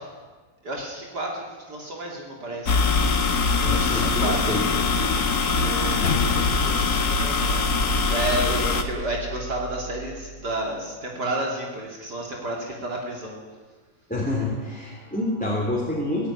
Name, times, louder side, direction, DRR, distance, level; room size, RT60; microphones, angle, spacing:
voice 1, 0.6-3.2 3.7-4.5 5.5-7.6 8.0-13.4, right 2 dB, 55° right, -1 dB, 3.2 m, -31 dB
sound 1, 2.7-8.8, left 4 dB, 55° left, 2.0 m, -23 dB
voice 2, 3.6-4.7 14.1-16.3, left 1 dB, 5° left, -4 dB, 3.4 m, -28 dB
sound 2, 6.0-10.6, left 4 dB, 90° left, 1.6 m, -31 dB
17.0 x 16.0 x 9.8 m, 1.4 s
omnidirectional pair, 2.1 m